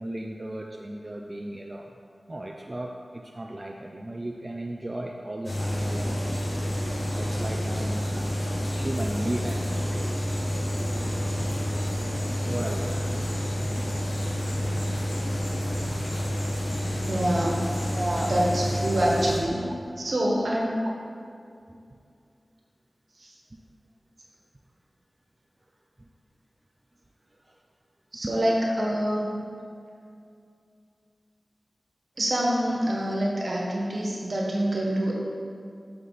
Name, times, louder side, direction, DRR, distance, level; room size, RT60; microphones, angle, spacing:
voice 1, 0.0-1.9 2.3-6.2 6.9-10.0 12.4-13.1 13.6-13.7 14.1-14.2 17.9-18.4 19.0-19.7 20.8-20.9 21.7-22.0 23.5-23.6 26.0-26.1 27.4-27.6 28.2-28.5, right 1 dB, 30° right, 1 dB, 0.5 m, -35 dB
sound 1, 5.5-19.4, equal, 55° left, 1.2 m, -29 dB
voice 2, 17.0-17.6 18.3-19.6 20.0-20.9 23.2-23.3 28.1-29.3 32.2-35.1, right 1 dB, 70° right, -3 dB, 1.4 m, -26 dB
8.2 x 5.8 x 4.1 m, 2.4 s
wide cardioid pair, 80°, 0 cm